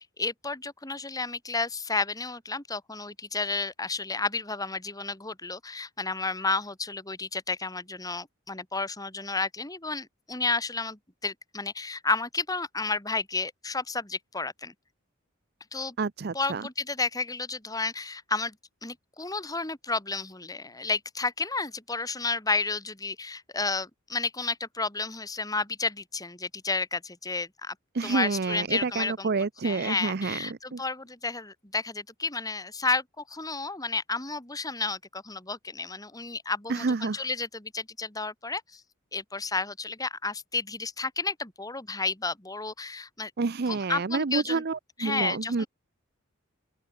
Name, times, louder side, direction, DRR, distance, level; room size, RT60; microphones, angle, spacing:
voice 1, 0.2-14.7 15.7-16.0 16.3-18.5 18.8-27.7 28.0-29.3 29.6-38.8 39.1-43.3 43.7-44.6 45.0-45.7, left 3 dB, 15° left, 3.1 m, -31 dB
voice 2, 16.0-16.6 27.9-30.8 36.7-37.2 43.4-45.6, right 4 dB, 50° right, 0.6 m, -29 dB
open air
head